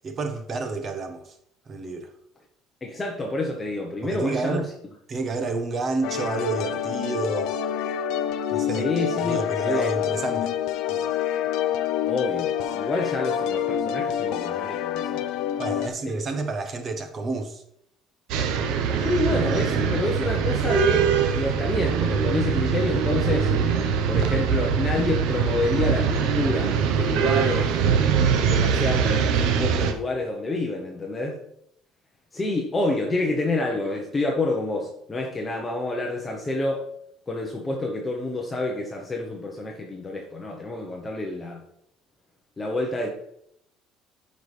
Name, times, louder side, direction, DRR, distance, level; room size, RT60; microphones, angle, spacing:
voice 1, 0.0-1.4 1.7-2.1 4.0-4.7 5.1-7.5 8.5-8.9 9.2-10.6 10.9-11.1 15.6-17.6, right 3 dB, 30° right, 1.0 m, -29 dB
voice 2, 2.8-4.7 8.7-9.4 9.6-9.9 12.1-15.6 16.0-16.2 19.0-23.5 24.1-27.8 28.5-31.4 32.3-36.9 37.3-41.7 42.6-43.1, left 2 dB, 15° left, 0.8 m, -28 dB
sound 1, 6.0-15.9, left 10 dB, 70° left, 0.6 m, -27 dB
sound 2, 18.3-29.9, right 7 dB, 75° right, 0.8 m, -23 dB
12.5 x 5.3 x 3.3 m
cardioid pair, 170°, 0 cm